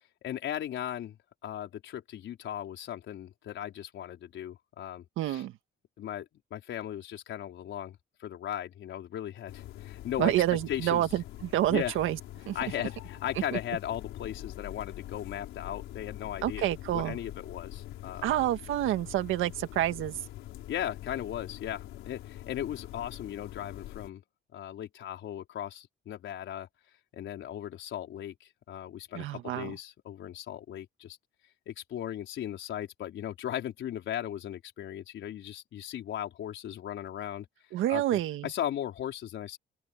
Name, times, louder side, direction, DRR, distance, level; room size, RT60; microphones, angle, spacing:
voice 1, 0.2-1.2 1.4-5.4 6.0-10.3 10.7-11.1 11.7-12.0 12.5-18.3 20.7-24.2 24.5-26.7 27.1-31.2 31.7-37.5 37.9-39.6, left 11 dB, 75° left, 4.5 m, -37 dB
voice 2, 5.2-5.5 10.2-12.2 12.5-12.6 16.4-17.2 18.2-20.2 29.1-29.7 37.7-38.5, right 13 dB, 85° right, 1.8 m, -28 dB
sound 1, 9.5-24.1, left 14 dB, 90° left, 4.7 m, -44 dB
open air
cardioid pair, 90°, 20 cm